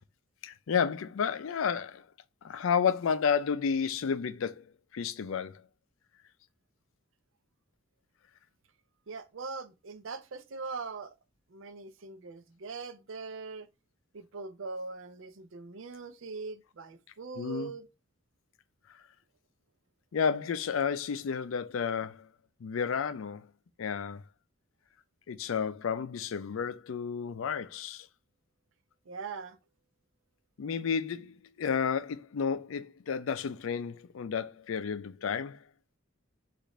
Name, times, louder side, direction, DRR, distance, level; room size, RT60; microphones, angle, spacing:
voice 1, 0.4-2.1 2.4-4.6 4.9-5.6 17.4-17.7 18.9-19.0 20.1-22.3 22.6-23.5 23.8-24.2 25.3-28.1 30.6-35.6, left 6 dB, 75° left, 0.4 m, -31 dB
voice 2, 9.1-11.1 11.5-13.7 14.1-17.9 29.1-29.6, right 4 dB, 65° right, 0.5 m, -41 dB
5.1 x 2.5 x 4.1 m
head